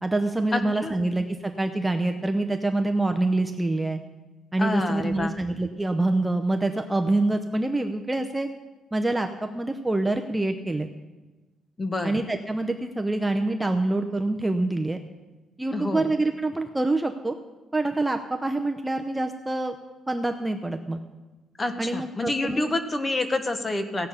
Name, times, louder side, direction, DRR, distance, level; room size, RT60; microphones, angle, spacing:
voice 1, 0.0-4.0 4.5-8.5 8.9-10.9 12.0-15.0 15.6-17.4 17.7-19.7 20.1-21.0 21.8-22.7, right 2 dB, 10° right, 5 dB, 0.6 m, -26 dB
voice 2, 0.5-1.0 4.6-5.4 11.8-12.2 15.7-16.1 21.6-24.1, left 2 dB, 25° left, 8 dB, 1.1 m, -28 dB
16.0 x 8.0 x 5.7 m, 1.2 s
cardioid pair, 130°, 0 cm